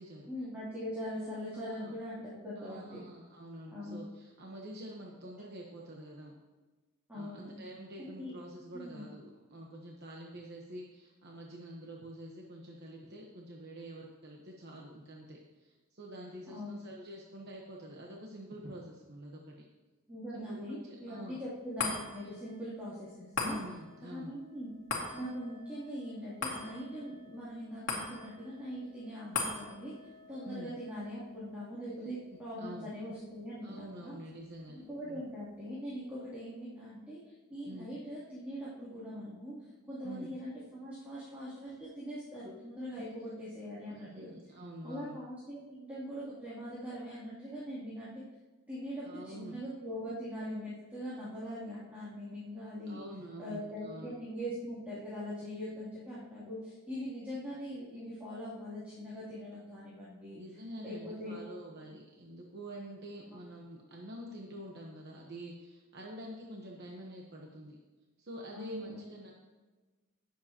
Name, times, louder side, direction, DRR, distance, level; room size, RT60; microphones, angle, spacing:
voice 1, 0.3-3.0 3.7-4.0 7.1-7.5 8.0-8.3 8.7-9.1 16.5-16.7 20.1-23.6 24.0-24.7 25.1-29.9 30.3-34.2 34.7-39.5 39.9-44.3 44.8-48.2 48.7-53.0 53.4-60.4 60.8-61.3 68.5-69.0, equal, 10° right, -11 dB, 2.9 m, -42 dB
voice 2, 1.5-2.0 2.6-6.3 7.1-19.7 20.3-21.4 23.4-24.3 30.4-30.7 32.0-32.1 32.6-32.9 33.6-35.2 37.7-38.0 40.0-40.3 43.9-45.2 49.0-49.6 52.9-54.1 60.4-67.8 68.2-69.3, right 1 dB, 50° right, -1 dB, 1.1 m, -47 dB
sound 1, 21.8-34.4 34.8-34.9, left 3 dB, 60° left, 2.4 m, -42 dB
18.0 x 7.6 x 2.9 m, 1.2 s
head